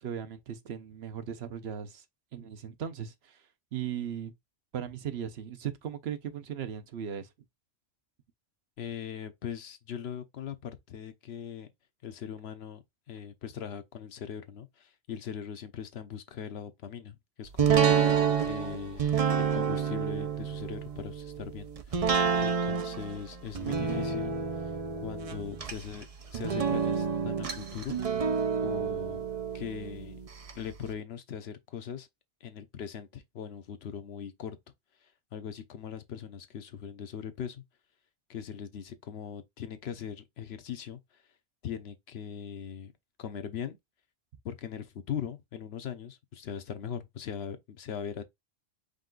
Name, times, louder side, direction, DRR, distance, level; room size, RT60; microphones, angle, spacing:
voice 1, 0.0-2.0 2.3-4.3 4.7-7.3, right 9 dB, 75° right, 1.0 m, -37 dB
voice 2, 8.8-11.7 12.0-19.1 19.3-24.8 25.0-26.1 26.3-28.0 28.6-29.3 29.5-30.2 30.5-32.1 32.4-34.6 35.0-37.6 38.3-41.2 41.6-42.9 43.2-43.8 44.4-48.2, left 8 dB, 75° left, 0.9 m, -40 dB
sound 1, 17.6-30.5 30.9-31.0, right 7 dB, 40° right, 0.6 m, -29 dB
5.2 x 2.4 x 3.8 m
omnidirectional pair, 1.1 m